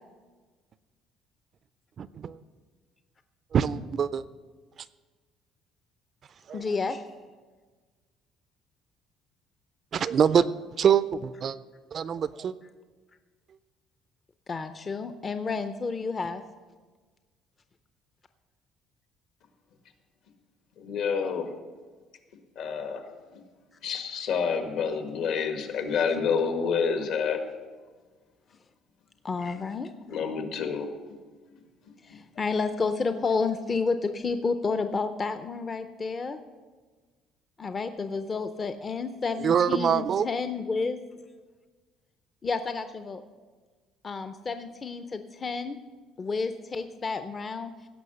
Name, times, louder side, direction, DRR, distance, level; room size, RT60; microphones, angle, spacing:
voice 1, 2.0-2.4 3.5-4.2 6.5-6.6 9.9-10.4 10.8-11.6 11.9-12.5 39.4-40.3, right 8 dB, 40° right, 0.4 m, -24 dB
voice 2, 6.5-7.0 14.5-16.4 29.2-29.9 32.0-36.4 37.6-41.0 42.4-43.2 44.0-45.8 46.2-47.7, left 4 dB, 25° left, 0.5 m, -30 dB
voice 3, 20.8-21.5 22.5-23.1 23.3-23.4 23.8-27.4 30.1-30.9 32.1-32.2, left 6 dB, 70° left, 1.6 m, -28 dB
16.5 x 5.7 x 6.9 m
cardioid pair, 145°, 0 cm